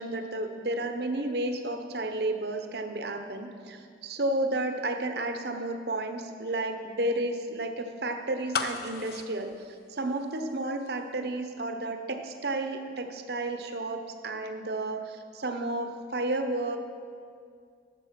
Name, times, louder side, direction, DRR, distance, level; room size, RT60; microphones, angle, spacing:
voice 1, 0.0-16.8, right 2 dB, 60° right, 6 dB, 0.8 m, -32 dB
sound 1, 8.5-10.6 10.9-11.0, left 5 dB, 55° left, 0.6 m, -34 dB
11.5 x 7.7 x 5.9 m, 2.2 s
head